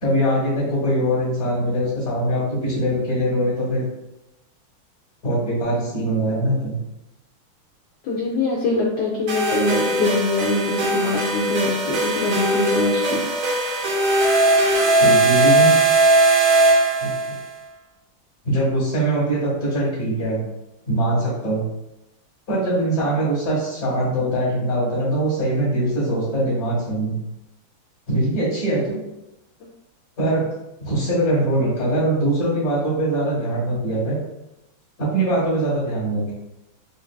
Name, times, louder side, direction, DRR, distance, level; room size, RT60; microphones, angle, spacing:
voice 1, 0.0-3.9 5.2-6.8 15.0-15.7 17.0-17.1 18.4-20.4 20.9-21.6 22.5-27.1 28.1-29.0 30.2-30.4 30.8-34.2 35.0-36.3, right 1 dB, 50° left, -8 dB, 1.8 m, -22 dB
voice 2, 8.0-13.2, left 3 dB, 70° left, -2 dB, 1.0 m, -23 dB
sound 1, 9.3-17.4, right 2 dB, 75° right, 1.8 m, -19 dB
4.5 x 2.5 x 2.2 m, 0.92 s
omnidirectional pair, 2.3 m